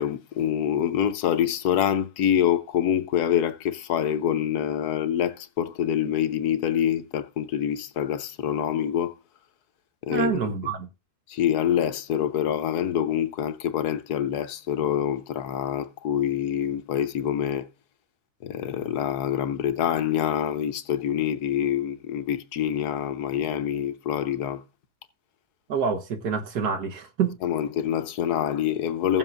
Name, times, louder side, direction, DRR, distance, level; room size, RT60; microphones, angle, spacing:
voice 1, 0.0-9.1 10.0-10.5 11.3-17.7 18.4-24.6 27.4-29.2, left 10 dB, 75° left, 1.3 m, -26 dB
voice 2, 10.1-10.9 25.7-27.4, right 6 dB, 75° right, 1.7 m, -27 dB
16.0 x 7.3 x 2.5 m
omnidirectional pair, 1.7 m